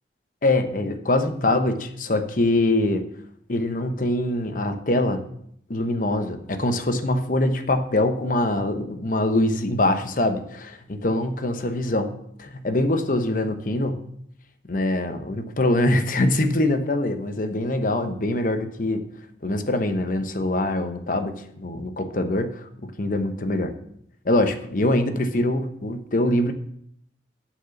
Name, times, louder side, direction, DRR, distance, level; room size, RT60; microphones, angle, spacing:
voice 1, 0.4-3.0 3.5-5.2 5.7-12.1 12.4-14.0 14.7-19.0 19.4-23.7 24.2-26.5, left 1 dB, 50° left, 8 dB, 0.9 m, -23 dB
8.0 x 6.1 x 7.0 m, 0.70 s
head